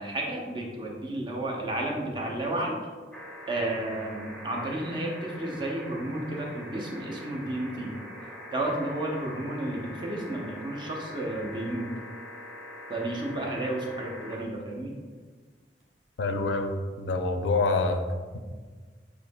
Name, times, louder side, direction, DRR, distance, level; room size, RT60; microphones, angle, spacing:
voice 1, 0.0-2.8 3.5-7.9 8.5-11.9 12.9-14.9, right 1 dB, 25° right, -1 dB, 0.7 m, -32 dB
sound 1, 3.1-14.4 15.8-15.9, equal, ahead, 1.4 m, -43 dB
voice 2, 16.2-18.0, left 3 dB, 85° left, 6 dB, 0.4 m, -26 dB
7.3 x 2.7 x 2.2 m, 1.5 s
head